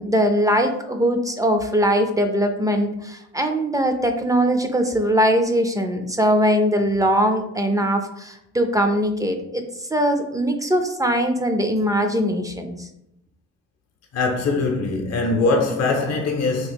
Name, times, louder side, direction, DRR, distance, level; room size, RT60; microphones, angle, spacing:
voice 1, 0.0-12.9, equal, 10° right, 0.4 m, -21 dB
voice 2, 14.1-16.7, left 3 dB, 55° left, 0.7 m, -22 dB
3.0 x 2.8 x 4.3 m
cardioid pair, 90°, 30 cm